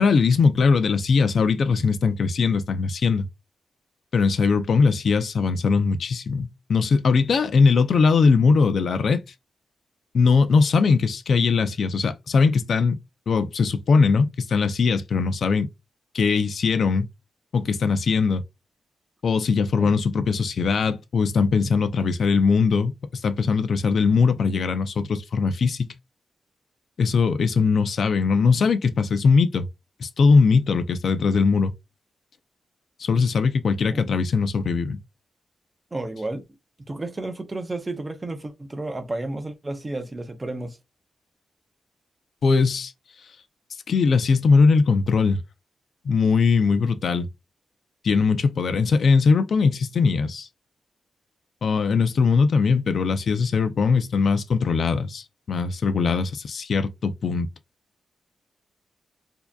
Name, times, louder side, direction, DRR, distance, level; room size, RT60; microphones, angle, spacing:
voice 1, 0.0-3.3 4.1-9.2 10.1-13.0 13.3-15.7 16.1-17.1 17.5-18.4 19.2-25.9 27.0-29.7 30.0-31.7 33.0-35.0 42.4-42.9 43.9-45.4 46.0-47.3 48.0-50.5 51.6-57.5, left 5 dB, 55° left, 0.5 m, -20 dB
voice 2, 35.9-36.4 36.9-40.8, right 2 dB, 20° right, 0.6 m, -32 dB
4.6 x 2.8 x 2.3 m
wide cardioid pair, 160°, 0 cm